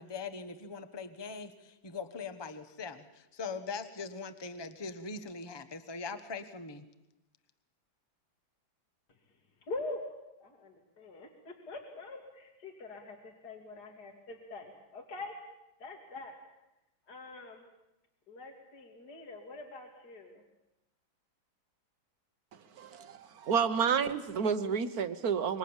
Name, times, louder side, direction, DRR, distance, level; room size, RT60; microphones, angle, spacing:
voice 1, 0.0-6.9, left 4 dB, 15° left, 9 dB, 1.0 m, -41 dB
voice 2, 9.7-10.0 10.4-15.4 15.8-16.4 17.1-17.6 18.3-20.4, left 2 dB, 55° left, 2 dB, 3.0 m, -44 dB
voice 3, 22.8-25.6, right 6 dB, 55° right, 11 dB, 1.5 m, -30 dB
26.5 x 23.5 x 7.3 m, 0.91 s
omnidirectional pair, 2.1 m